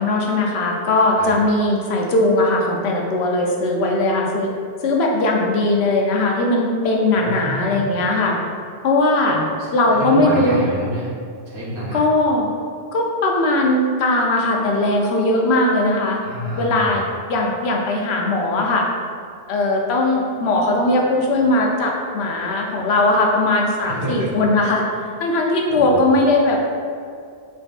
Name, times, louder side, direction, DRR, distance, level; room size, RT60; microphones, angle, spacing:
voice 1, 0.0-4.5 4.8-8.4 8.8-9.4 9.7-10.6 11.9-12.5 12.9-16.2 16.6-18.9 19.5-24.8 25.2-26.7, left 2 dB, 80° left, 0 dB, 0.9 m, -19 dB
voice 2, 7.1-7.8 9.3-11.1 11.5-12.0 16.2-17.0 23.9-24.3 25.7-26.1, equal, 60° right, -7 dB, 1.1 m, -28 dB
3.8 x 3.4 x 2.4 m, 2.2 s
omnidirectional pair, 1.1 m